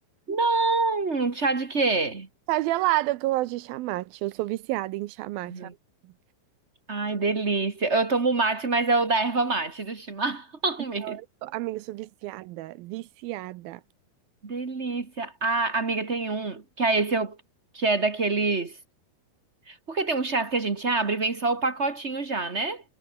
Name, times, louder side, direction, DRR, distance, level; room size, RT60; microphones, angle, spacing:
voice 1, 0.3-2.3 5.5-5.7 6.9-11.2 14.4-17.4 17.7-18.8 19.7-22.8, right 3 dB, 40° right, 0.9 m, -26 dB
voice 2, 2.5-5.7 11.0-13.8, right 17 dB, 85° right, 2.6 m, -30 dB
omnidirectional pair, 4.2 m